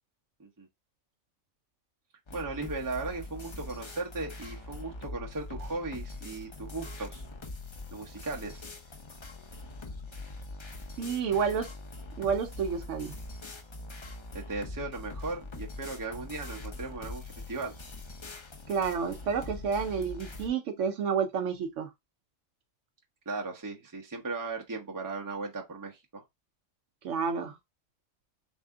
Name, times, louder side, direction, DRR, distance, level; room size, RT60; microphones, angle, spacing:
sound 1, 2.3-20.5, left 2 dB, 40° left, 0.4 m, -43 dB
voice 1, 2.3-7.2 7.9-8.6 14.3-17.7 23.3-26.2, right 3 dB, 20° right, 0.7 m, -37 dB
voice 2, 11.0-11.7 12.2-13.1 18.7-21.9 27.0-27.6, right 6 dB, 70° right, 0.9 m, -30 dB
3.3 x 2.8 x 3.6 m
omnidirectional pair, 1.4 m